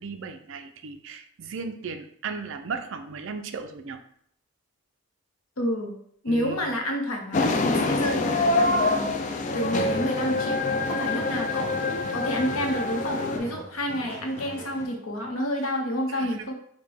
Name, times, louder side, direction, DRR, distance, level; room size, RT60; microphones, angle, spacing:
voice 1, 0.0-4.0 6.3-6.6 16.1-16.4, right 5 dB, 65° right, 7 dB, 0.4 m, -36 dB
voice 2, 5.6-6.0 6.2-10.6 10.9-16.5, equal, 80° left, 2 dB, 0.8 m, -29 dB
sound 1, 7.3-13.4, left 2 dB, 35° left, 0.3 m, -25 dB
sound 2, 9.5-14.9, right 1 dB, 10° left, 1.2 m, -42 dB
5.2 x 2.1 x 3.4 m, 0.66 s
head